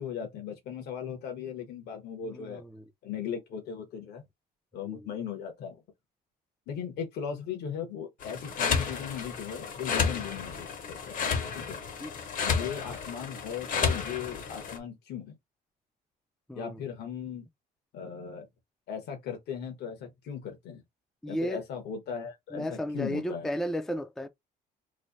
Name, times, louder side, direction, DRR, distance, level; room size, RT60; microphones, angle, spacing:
voice 1, 0.0-2.6 3.0-4.2 4.7-5.8 6.7-11.8 12.4-15.3 16.5-17.4 17.9-18.5 18.9-20.8 21.3-23.5, left 8 dB, 75° left, 1.1 m, -38 dB
voice 2, 2.3-2.8 4.8-5.1 12.0-12.1 16.5-16.8 21.2-21.6 22.5-24.3, equal, 5° left, 0.4 m, -34 dB
sound 1, 8.2-14.8, left 6 dB, 55° left, 0.8 m, -32 dB
3.2 x 2.1 x 4.0 m
cardioid pair, 110°, 17 cm